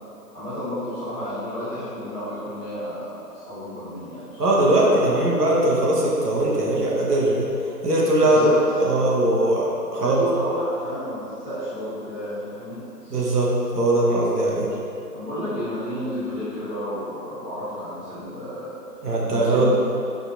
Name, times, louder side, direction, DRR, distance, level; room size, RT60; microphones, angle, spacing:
voice 1, 0.3-5.2 8.2-8.8 10.0-13.2 15.1-19.6, equal, 5° left, -24 dB, 0.7 m, -32 dB
voice 2, 4.4-7.5 7.8-8.4 8.8-10.2 13.1-14.7 19.0-19.6, right 1 dB, 75° right, -4 dB, 1.0 m, -20 dB
5.2 x 2.7 x 2.5 m, 2.7 s
figure-of-eight pair, 150°, 48 cm